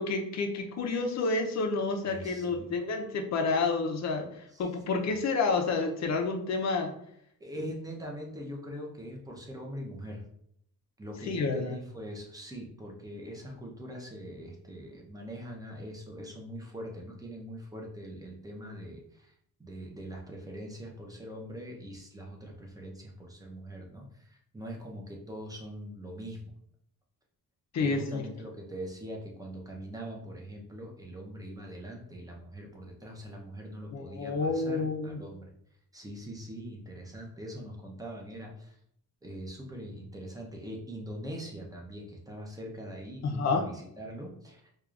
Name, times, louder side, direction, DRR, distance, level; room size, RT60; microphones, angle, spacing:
voice 1, 0.0-6.9 11.3-11.8 27.7-28.2 33.9-35.2 43.2-43.6, left 4 dB, 50° left, 3 dB, 0.7 m, -29 dB
voice 2, 2.0-2.7 4.5-4.6 7.4-10.2 11.0-19.3 19.6-26.5 27.8-35.5 35.9-38.8 39.2-44.7, equal, 10° right, -1 dB, 0.7 m, -42 dB
4.7 x 2.4 x 2.4 m, 0.70 s
cardioid pair, 125°, 35 cm